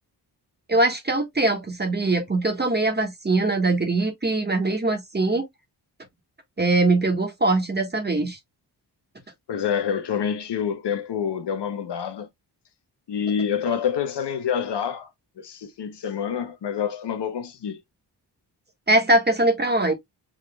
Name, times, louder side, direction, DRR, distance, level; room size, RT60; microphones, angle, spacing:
voice 1, 0.7-5.4 6.6-8.4 18.9-19.9, right 2 dB, 25° right, 1.5 m, -22 dB
voice 2, 9.5-12.3 13.1-15.1 15.4-17.8, left 8 dB, 75° left, 1.0 m, -27 dB
6.0 x 3.1 x 2.3 m
cardioid pair, 75°, 42 cm